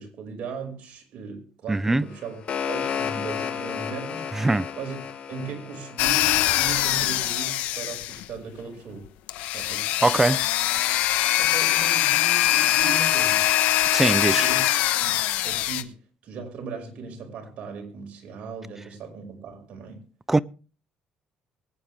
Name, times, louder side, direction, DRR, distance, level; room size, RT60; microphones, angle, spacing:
voice 1, 0.0-2.4 2.7-4.4 4.8-5.0 5.3-9.1 9.5-9.9 11.4-13.5 14.3-14.7 15.0-20.0, right 5 dB, 60° right, 5.5 m, -37 dB
voice 2, 1.7-2.1 4.3-4.7 10.0-10.4 13.9-14.5 20.3-20.4, right 2 dB, 15° right, 0.6 m, -21 dB
sound 1, 2.1-7.1, left 7 dB, 55° left, 3.7 m, -33 dB
sound 2, 6.0-8.4 9.3-15.8, left 14 dB, 90° left, 1.1 m, -23 dB
23.0 x 9.4 x 3.4 m
cardioid pair, 105°, 2 cm